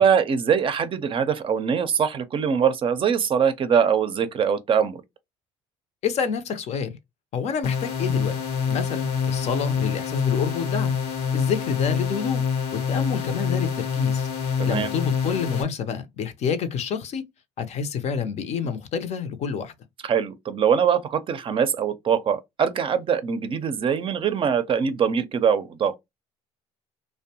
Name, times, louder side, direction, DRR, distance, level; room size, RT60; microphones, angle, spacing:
voice 1, 0.0-5.0 14.6-14.9 20.0-25.9, right 7 dB, 40° right, 0.5 m, -22 dB
voice 2, 6.0-7.0 7.3-8.3 8.7-11.0 11.3-12.4 12.7-17.2 17.6-19.7, left 6 dB, 55° left, 0.6 m, -28 dB
sound 1, 7.6-15.6, left 6 dB, 80° left, 0.9 m, -26 dB
2.5 x 2.1 x 2.7 m
supercardioid pair, 95°, 14 cm